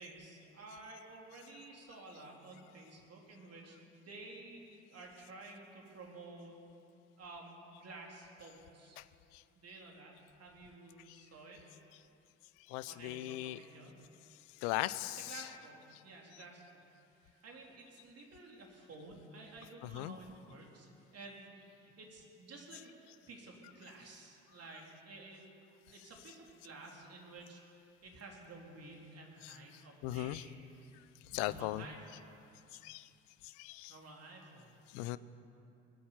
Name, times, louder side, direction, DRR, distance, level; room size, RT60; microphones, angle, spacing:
voice 1, 0.0-4.6 4.9-6.5 7.2-9.0 9.6-11.6 12.9-13.9 15.2-16.8 17.2-22.9 23.3-25.4 25.9-30.9 31.3-32.4 33.9-34.8, right 2 dB, 40° right, 0 dB, 3.6 m, -52 dB
voice 2, 12.7-13.6 14.6-15.4 19.9-20.2 29.4-29.5 30.0-30.4 31.3-31.8 32.8-33.1 33.4-33.9 34.9-35.2, left 17 dB, 65° left, 16 dB, 0.6 m, -38 dB
20.5 x 8.6 x 7.2 m, 2.7 s
figure-of-eight pair, 55°, 37 cm